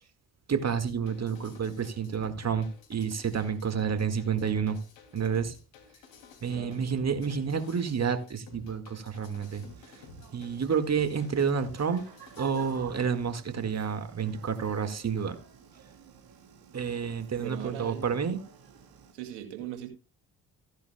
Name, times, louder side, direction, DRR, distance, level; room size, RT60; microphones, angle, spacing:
voice 1, 0.5-4.8 5.1-5.5 6.4-9.6 10.3-12.0 12.4-15.4 16.7-18.4, right 6 dB, 35° right, 1.9 m, -29 dB
sound 1, 0.7-13.0, left 4 dB, 70° left, 2.8 m, -52 dB
voice 2, 6.5-6.8 17.3-18.1 19.1-19.9, right 11 dB, 75° right, 2.4 m, -39 dB
sound 2, 9.4-19.1, right 7 dB, 50° right, 3.7 m, -53 dB
15.5 x 10.5 x 2.3 m
hypercardioid pair, 50°, 45 cm